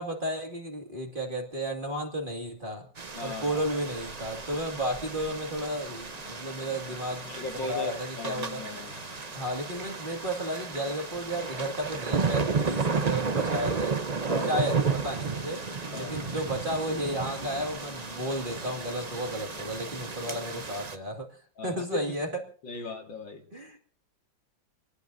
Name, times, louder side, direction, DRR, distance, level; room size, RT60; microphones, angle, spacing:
voice 1, 0.0-2.9 3.2-7.3 7.6-8.6 9.4-14.0 14.4-15.6 16.0-21.3 21.6-22.3 23.5-23.8, equal, 25° right, 1 dB, 2.4 m, -33 dB
sound 1, 3.0-20.9, right 5 dB, 45° right, 0.5 m, -33 dB
voice 2, 3.1-3.6 7.3-9.0 14.3-14.7 15.9-16.2 21.6-21.8 22.6-23.4, left 3 dB, 70° left, 3 dB, 2.8 m, -38 dB
sound 2, 3.4-20.8, left 4 dB, 55° left, 2.0 m, -48 dB
27.0 x 19.0 x 2.7 m, 0.43 s
omnidirectional pair, 2.1 m